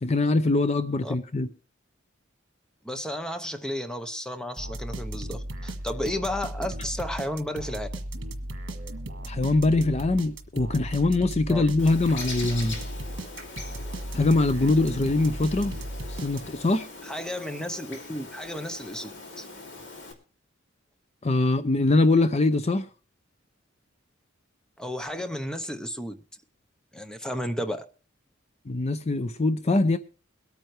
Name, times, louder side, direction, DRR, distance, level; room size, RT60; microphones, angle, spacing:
voice 1, 0.0-1.5 9.3-12.8 14.1-15.8 16.1-16.9 21.2-22.9 28.7-30.0, left 2 dB, 35° left, 11 dB, 0.6 m, -23 dB
voice 2, 2.8-7.9 11.5-11.6 17.0-19.1 19.4-19.5 24.8-26.2 26.9-27.8, left 1 dB, 5° left, 8 dB, 0.8 m, -33 dB
sound 1, 4.6-16.8, right 1 dB, 65° right, 1.5 m, -36 dB
Bird, 11.8-20.1, left 3 dB, 65° left, 2.6 m, -41 dB
22.5 x 9.1 x 3.2 m, 0.38 s
head